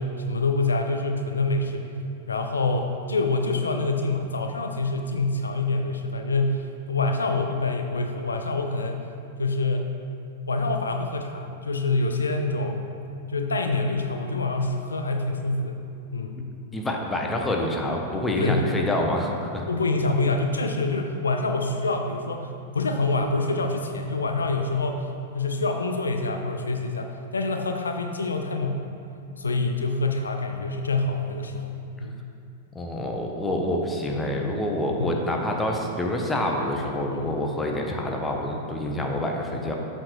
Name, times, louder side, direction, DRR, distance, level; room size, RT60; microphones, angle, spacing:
voice 1, 0.0-1.9 2.3-9.1 9.4-9.9 10.5-12.8 13.3-15.8 16.1-16.5 18.4-18.9 19.7-22.5 22.7-25.1 25.3-28.8 29.4-32.2 35.0-35.1 37.1-37.3, left 3 dB, 80° left, 4 dB, 0.5 m, -26 dB
voice 2, 16.7-19.7 32.7-39.8, left 1 dB, 10° left, 1 dB, 0.9 m, -27 dB
7.6 x 4.3 x 4.5 m, 2.5 s
figure-of-eight pair, 95°, 0 cm